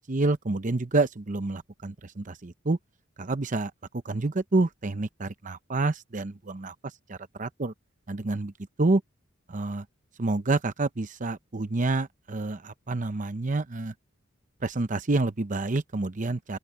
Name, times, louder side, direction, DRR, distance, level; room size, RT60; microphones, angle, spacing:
voice 1, 0.1-2.8 3.2-3.7 4.0-6.7 7.1-7.7 8.1-8.5 8.8-9.0 9.5-9.9 10.2-13.9 14.6-16.6, right 2 dB, 40° right, 0.8 m, -28 dB
open air
head